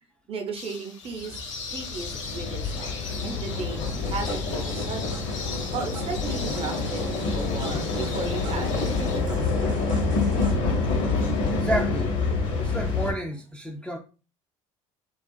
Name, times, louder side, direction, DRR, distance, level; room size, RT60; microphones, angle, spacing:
voice 1, 0.3-1.4 1.7-3.0 3.2-3.8 4.1-5.2 5.7-9.5, right 4 dB, 35° right, 0.6 m, -35 dB
sound 1, 0.5-9.2, left 5 dB, 85° left, 0.5 m, -39 dB
sound 2, 1.2-13.1, left 3 dB, 55° left, 0.7 m, -27 dB
sound 3, 3.9-10.5, right 5 dB, 85° right, 0.5 m, -43 dB
voice 2, 11.5-12.1 12.6-14.0, right 1 dB, 5° left, 0.3 m, -30 dB
2.4 x 2.4 x 2.2 m
hypercardioid pair, 65°, 16 cm